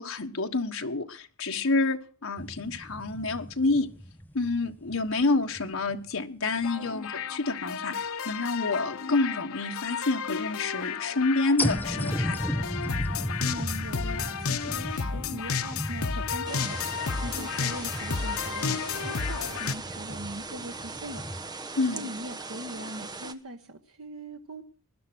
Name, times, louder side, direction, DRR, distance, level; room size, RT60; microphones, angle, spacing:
voice 1, 0.0-3.9 4.3-8.0 8.2-12.4 21.8-22.1, left 3 dB, 75° left, 4 dB, 1.4 m, -28 dB
sound 1, 2.4-6.1 6.6-6.7 11.6-21.5, equal, 10° left, 1.0 m, -36 dB
sound 2, 6.6-19.7, left 6 dB, 90° left, 0.9 m, -32 dB
voice 2, 13.4-21.2 21.9-24.6, right 1 dB, 85° right, 5 dB, 1.3 m, -41 dB
sound 3, 16.4-23.3, right 3 dB, 20° right, 1.0 m, -40 dB
20.0 x 11.0 x 6.2 m, 0.40 s
head